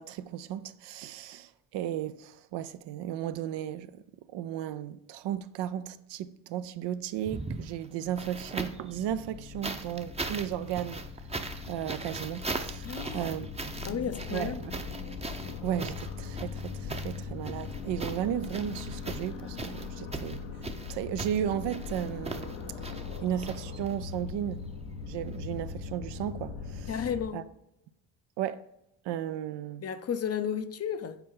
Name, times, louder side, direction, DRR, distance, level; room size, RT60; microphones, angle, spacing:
voice 1, 0.0-4.0 4.3-11.0 11.7-14.8 15.6-20.4 20.9-22.9 23.2-24.6 25.1-26.9 27.3-27.4 28.4-28.6 29.0-29.8, right 10 dB, 75° right, 0.6 m, -35 dB
sound 1, 7.2-8.9 9.6-24.1 25.3-25.4, right 3 dB, 15° right, 0.7 m, -39 dB
sound 2, 8.0-27.2, left 5 dB, 85° left, 0.9 m, -40 dB
voice 2, 12.8-13.3 13.8-14.6 26.9-27.5 29.8-31.2, left 8 dB, 35° left, 0.5 m, -33 dB
8.1 x 4.4 x 3.8 m
supercardioid pair, 70°, 43 cm